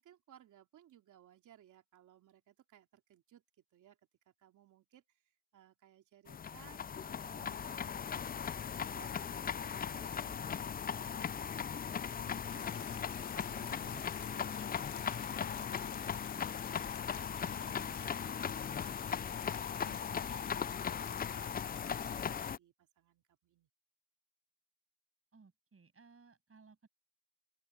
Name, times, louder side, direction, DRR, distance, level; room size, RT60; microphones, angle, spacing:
voice 1, 0.0-23.7, right 11 dB, 85° right, 3.1 m, -63 dB
sound 1, 6.3-22.6, left 7 dB, 30° left, 0.4 m, -38 dB
sound 2, 12.5-22.5, left 10 dB, 70° left, 1.0 m, -53 dB
voice 2, 17.6-17.9 25.3-26.9, right 4 dB, 50° right, 8.0 m, -62 dB
open air
supercardioid pair, 45°, 30 cm